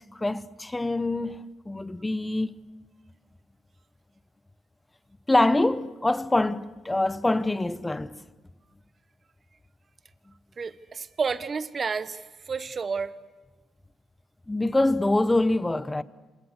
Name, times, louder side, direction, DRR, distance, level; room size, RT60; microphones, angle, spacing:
voice 1, 0.1-2.6 5.3-8.2 14.5-16.0, left 2 dB, 15° left, 0.9 m, -25 dB
voice 2, 10.6-12.2 12.5-13.1, right 5 dB, 40° right, 1.2 m, -30 dB
28.0 x 26.5 x 6.6 m
cardioid pair, 90°, 0 cm